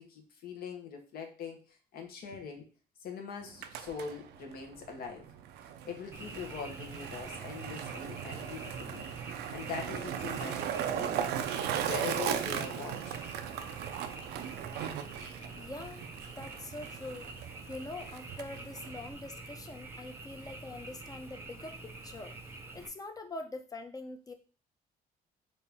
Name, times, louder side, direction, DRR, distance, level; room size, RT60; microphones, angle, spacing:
voice 1, 0.0-2.7 3.0-5.3 5.6-9.1 9.5-11.3 11.8-13.2, left 6 dB, 65° left, 4 dB, 1.1 m, -42 dB
Skateboard, 3.4-19.1, right 9 dB, 80° right, 0.5 m, -38 dB
Frog, 6.1-22.9, right 2 dB, 15° right, 0.7 m, -47 dB
voice 2, 15.6-16.0 16.4-17.3 17.7-22.3 22.7-24.3, left 2 dB, 20° left, 6 dB, 0.6 m, -44 dB
4.3 x 2.7 x 3.4 m, 0.35 s
cardioid pair, 110°, 17 cm